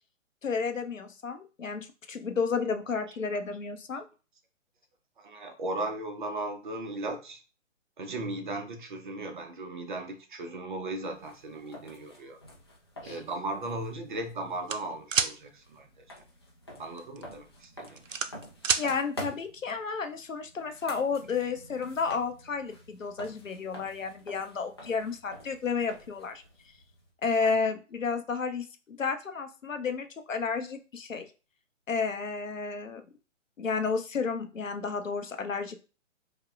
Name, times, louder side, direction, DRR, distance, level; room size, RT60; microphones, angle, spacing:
voice 1, 0.4-4.1 13.0-13.2 18.8-26.4 27.2-31.3 31.9-33.0 33.6-35.8, left 5 dB, 90° left, 7 dB, 0.7 m, -32 dB
voice 2, 5.2-7.4 8.0-12.4 13.0-16.2 16.8-18.0 27.4-27.5, right 2 dB, 40° right, 5 dB, 0.6 m, -37 dB
sound 1, 11.0-27.1, equal, 20° left, 0.4 m, -48 dB
sound 2, 14.7-15.3 17.0-17.2 17.6-18.9, right 6 dB, 90° right, 0.5 m, -27 dB
4.9 x 2.1 x 2.4 m, 0.34 s
figure-of-eight pair, 135°, 38 cm